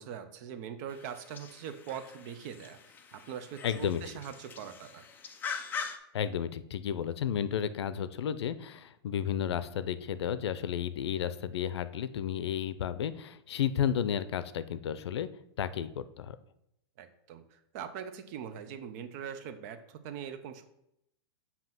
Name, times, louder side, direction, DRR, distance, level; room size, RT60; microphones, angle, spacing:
voice 1, 0.0-2.8 3.1-5.1 17.0-20.6, right 8 dB, 40° right, 9 dB, 0.6 m, -42 dB
sound 1, 0.9-6.0, left 6 dB, 15° left, 0.4 m, -43 dB
voice 2, 3.6-4.0 6.1-15.3 15.6-16.4, left 9 dB, 90° left, 14 dB, 0.5 m, -32 dB
7.5 x 2.8 x 5.8 m, 0.81 s
supercardioid pair, 155°, 14 cm